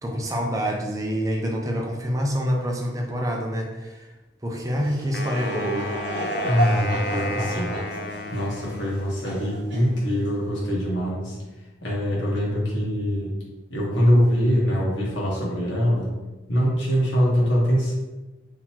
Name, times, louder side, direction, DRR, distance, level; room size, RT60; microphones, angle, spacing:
voice 1, 0.0-4.1 4.4-5.9, equal, 15° right, 0 dB, 0.5 m, -26 dB
Laughter / Crowd, 4.6-10.4, right 1 dB, 70° right, 1.0 m, -32 dB
Wind instrument woodwind instrument, 5.1-9.4, left 2 dB, 50° left, 0.4 m, -34 dB
voice 2, 6.4-7.8 8.3-11.4 11.8-13.3 13.7-16.1 16.5-17.9, equal, 70° left, -5 dB, 1.3 m, -23 dB
3.8 x 2.9 x 2.9 m, 1.1 s
head